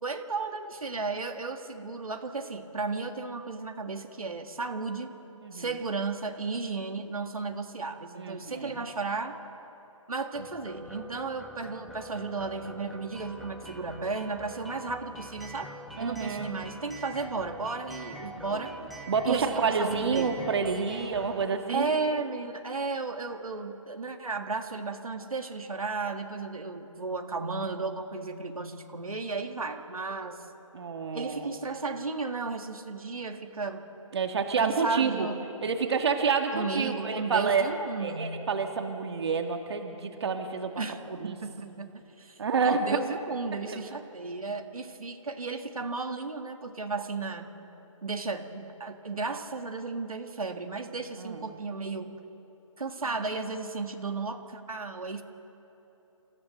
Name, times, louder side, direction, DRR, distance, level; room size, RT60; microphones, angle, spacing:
voice 1, 0.0-5.1 5.5-9.4 10.1-15.7 16.0-18.7 19.2-20.5 21.7-30.4 31.1-33.9 34.6-35.4 36.5-38.5 40.8-41.9 42.2-47.5 48.0-52.2 52.8-55.2, right 4 dB, 90° right, 5 dB, 1.8 m, -34 dB
voice 2, 8.2-8.8 16.0-16.5 18.5-18.6 19.1-22.0 30.7-31.5 34.1-35.3 35.6-37.6 38.0-40.7 41.1-41.4 42.4-42.8 43.7-43.8 51.2-51.5 53.0-53.1, right 5 dB, 50° right, 5 dB, 1.9 m, -28 dB
sound 1, 10.3-21.4, right 1 dB, ahead, 0.8 m, -45 dB
29.0 x 15.0 x 6.8 m, 3.0 s
hypercardioid pair, 160°, 18 cm